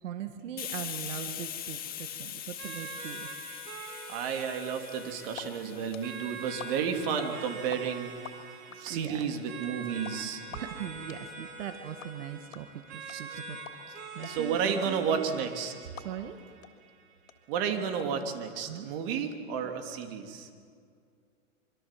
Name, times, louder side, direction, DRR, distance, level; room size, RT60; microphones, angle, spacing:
voice 1, 0.0-3.3 8.9-9.3 10.5-13.6 14.1-15.3 16.0-16.4 18.7-19.0, right 9 dB, 70° right, 8 dB, 1.7 m, -40 dB
Hiss, 0.6-8.0, left 10 dB, 20° left, 1.8 m, -42 dB
sound 1, 2.6-17.6, right 4 dB, 30° right, 3.3 m, -44 dB
voice 2, 4.1-8.1 8.8-10.4 13.1-13.4 14.2-15.7 17.5-20.5, right 7 dB, 45° right, 5 dB, 3.1 m, -32 dB
sound 2, 5.4-5.5 5.7-7.8 8.0-16.4 16.6-16.7 17.0-18.0, left 9 dB, 85° left, 3.3 m, -45 dB
26.0 x 24.5 x 7.6 m, 2.2 s
hypercardioid pair, 145°, 39 cm